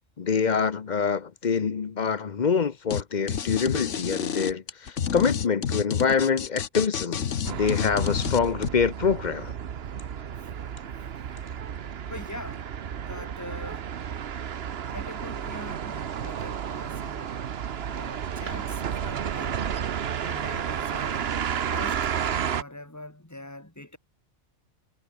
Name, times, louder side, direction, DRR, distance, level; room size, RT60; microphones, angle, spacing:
voice 1, 0.2-9.5, left 6 dB, 40° left, 0.9 m, -25 dB
sound 1, 2.9-3.0 3.3-8.7, left 7 dB, 80° left, 1.5 m, -29 dB
sound 2, 7.4-22.6, right 8 dB, 60° right, 1.1 m, -32 dB
voice 2, 12.0-12.7 13.0-13.9 14.9-17.3 17.8-21.3 21.6-24.0, left 1 dB, 15° left, 3.2 m, -43 dB
omnidirectional pair, 1.2 m